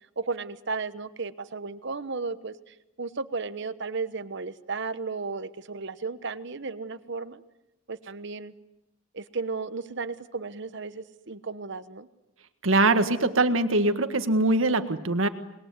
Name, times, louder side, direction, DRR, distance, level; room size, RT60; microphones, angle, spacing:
voice 1, 0.2-2.5 3.0-7.4 7.9-8.5 9.1-12.1, right 4 dB, 60° right, 12 dB, 1.2 m, -34 dB
voice 2, 12.6-15.3, right 2 dB, 85° right, 9 dB, 1.7 m, -22 dB
26.5 x 21.0 x 9.7 m, 0.92 s
head